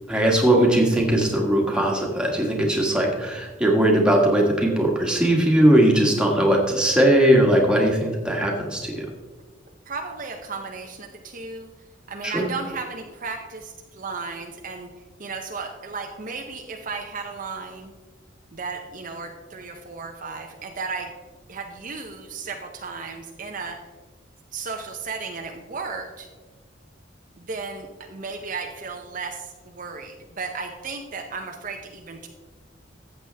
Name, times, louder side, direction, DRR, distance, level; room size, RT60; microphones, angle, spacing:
voice 1, 0.1-9.1 12.2-12.5, right 1 dB, 5° right, -1 dB, 1.6 m, -19 dB
voice 2, 9.9-11.7 12.1-14.9 15.2-17.9 18.5-21.1 21.5-23.8 24.5-26.3 27.4-32.3, right 4 dB, 45° right, 3 dB, 0.7 m, -34 dB
14.0 x 8.0 x 3.4 m, 1.4 s
head